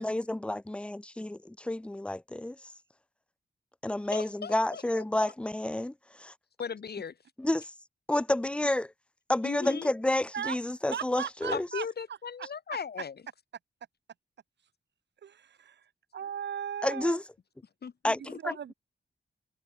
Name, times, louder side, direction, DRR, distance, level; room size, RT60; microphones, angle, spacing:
voice 1, 0.0-2.6 3.8-6.3 7.4-7.7 8.1-8.9 9.3-11.7 16.8-17.2 18.0-18.7, left 1 dB, 5° left, 0.4 m, -30 dB
voice 2, 4.1-4.8 6.6-7.2 9.4-9.9 11.5-13.1 17.8-18.4, left 6 dB, 65° left, 1.5 m, -37 dB
voice 3, 10.9-11.9 15.2-17.2 18.4-18.7, right 8 dB, 90° right, 1.1 m, -37 dB
cardioid pair, 70°, 18 cm